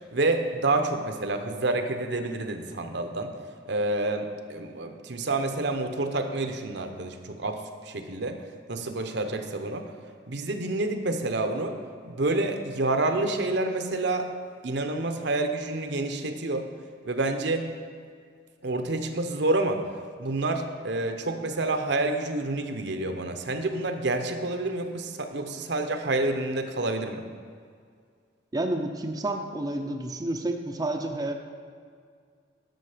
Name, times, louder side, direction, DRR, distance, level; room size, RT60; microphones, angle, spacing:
voice 1, 0.1-3.3 3.7-8.4 8.7-9.9 10.3-11.8 12.0-14.3 14.6-16.7 17.0-17.7 18.6-19.8 20.2-27.2, right 2 dB, 65° right, 6 dB, 0.8 m, -28 dB
voice 2, 28.5-31.3, right 1 dB, 20° right, 3 dB, 0.6 m, -30 dB
12.0 x 6.4 x 5.0 m, 2.1 s
head